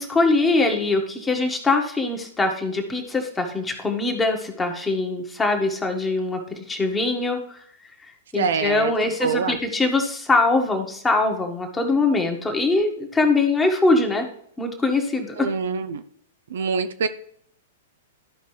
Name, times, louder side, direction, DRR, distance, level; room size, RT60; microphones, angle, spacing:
voice 1, 0.0-7.6 8.0-14.3 14.6-15.5, left 3 dB, 10° left, 3 dB, 1.5 m, -22 dB
voice 2, 8.4-8.9 9.2-9.6 15.4-16.0 16.5-17.1, right 5 dB, 65° right, 10 dB, 0.5 m, -24 dB
13.0 x 5.0 x 3.3 m, 0.64 s
figure-of-eight pair, 105°, 0 cm